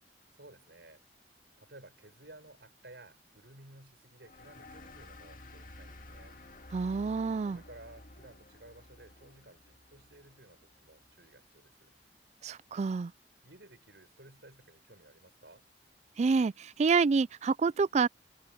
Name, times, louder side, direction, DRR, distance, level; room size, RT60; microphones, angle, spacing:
voice 1, 0.3-1.0 1.6-6.4 7.5-11.9 13.4-15.7, right 2 dB, 70° right, 6.5 m, -55 dB
sound 1, 4.2-11.3, left 2 dB, 50° left, 2.2 m, -52 dB
voice 2, 6.7-7.6 12.4-13.1 16.2-18.1, right 5 dB, 40° right, 0.3 m, -28 dB
head